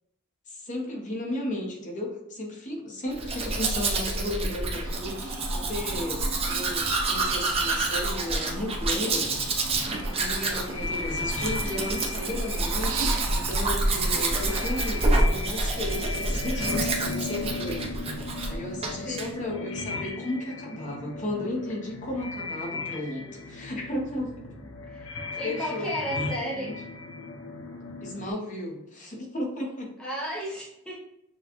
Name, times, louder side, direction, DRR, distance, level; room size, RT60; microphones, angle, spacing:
voice 1, 0.5-9.5 10.0-15.0 15.3-17.8 18.1-24.3 25.4-25.9 26.5-26.7 28.0-29.9, left 1 dB, 35° left, -1 dB, 1.0 m, -34 dB
Domestic sounds home sounds, 3.1-18.5 18.8-19.3, right 2 dB, 30° right, 0.6 m, -28 dB
Chirp tweet, 4.9-15.3, right 4 dB, 80° right, 0.6 m, -39 dB
sound 1, 9.2-28.3, left 3 dB, 65° left, 0.7 m, -37 dB
voice 2, 19.0-19.4 24.9-25.1 25.4-26.8 30.0-30.9, equal, 5° left, -6 dB, 0.8 m, -34 dB
6.4 x 2.4 x 2.9 m, 0.88 s
head